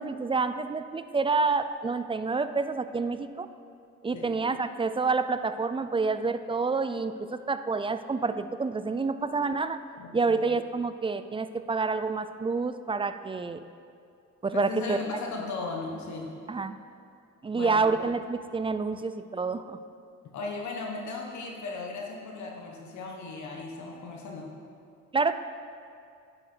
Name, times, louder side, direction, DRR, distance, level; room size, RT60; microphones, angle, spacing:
voice 1, 0.0-3.5 4.0-9.8 10.1-13.6 14.4-15.0 16.5-16.7 17.4-19.8 25.1-25.3, right 4 dB, 20° right, 11 dB, 0.4 m, -28 dB
voice 2, 10.0-10.4 14.5-16.3 17.5-17.9 20.3-24.5, left 3 dB, 70° left, 0 dB, 1.3 m, -36 dB
9.7 x 7.6 x 4.5 m, 2.4 s
cardioid pair, 90°, 30 cm